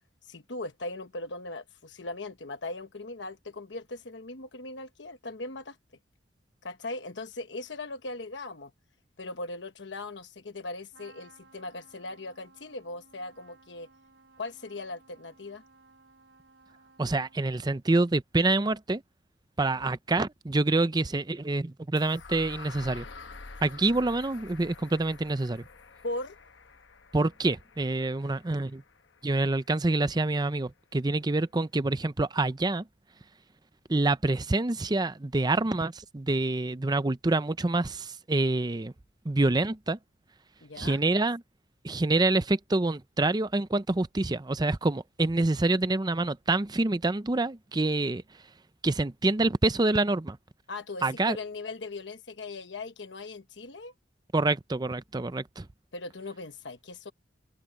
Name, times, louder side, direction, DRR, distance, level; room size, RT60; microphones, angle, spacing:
voice 1, 0.2-5.8 6.6-8.7 9.2-13.9 14.4-15.6 26.0-26.4 40.6-41.0 50.7-53.9 55.9-57.1, left 2 dB, 75° left, 1.2 m, -39 dB
Trumpet, 10.9-17.8, right 3 dB, 85° right, 3.6 m, -59 dB
voice 2, 17.0-19.0 19.6-23.1 23.6-25.6 27.1-28.8 29.2-32.9 33.9-38.9 39.2-40.0 40.8-41.4 41.8-48.2 48.8-50.4 51.0-51.4 54.3-55.7, right 2 dB, 25° right, 0.6 m, -26 dB
sound 1, 22.0-29.9, left 4 dB, 90° left, 1.0 m, -48 dB
head